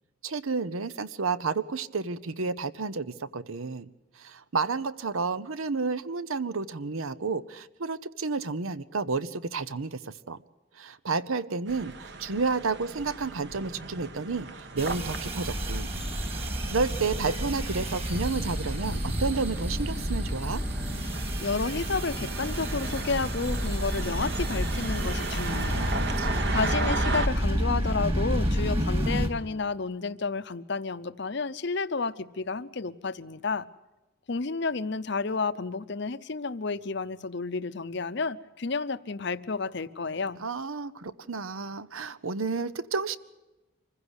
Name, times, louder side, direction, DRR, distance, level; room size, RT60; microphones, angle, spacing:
voice 1, 0.2-3.9 4.2-10.4 10.7-15.9 16.3-20.6 25.4-25.9 26.2-26.7 40.4-43.2, right 4 dB, 80° right, 0.9 m, -31 dB
sound 1, 11.7-27.3, right 3 dB, 55° right, 1.3 m, -38 dB
sound 2, 14.8-29.3, equal, 25° right, 2.3 m, -30 dB
voice 2, 21.4-25.9 26.5-33.7 34.3-40.4, left 4 dB, 55° left, 0.7 m, -31 dB
25.0 x 15.5 x 8.2 m
head